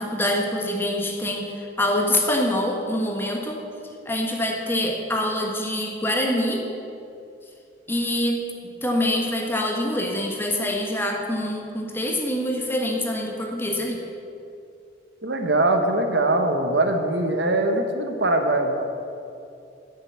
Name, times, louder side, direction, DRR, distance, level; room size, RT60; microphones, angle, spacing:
voice 1, 0.0-3.6 4.0-6.7 7.9-8.5 8.8-14.0, left 1 dB, 15° left, 1 dB, 1.3 m, -25 dB
voice 2, 15.2-18.8, right 2 dB, 75° right, 5 dB, 1.2 m, -22 dB
10.5 x 6.7 x 8.6 m, 2.5 s
head